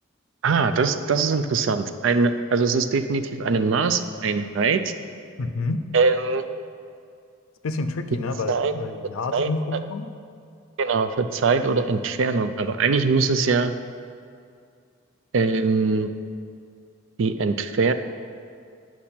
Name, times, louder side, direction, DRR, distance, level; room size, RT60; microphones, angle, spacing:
voice 1, 0.4-4.9 5.9-6.4 8.5-8.7 9.3-9.5 10.8-13.7 15.3-16.1 17.2-17.9, right 4 dB, 65° right, 9 dB, 0.4 m, -22 dB
voice 2, 5.4-5.9 7.6-10.1, left 3 dB, 75° left, 9 dB, 0.5 m, -29 dB
10.0 x 6.0 x 4.3 m, 2.3 s
head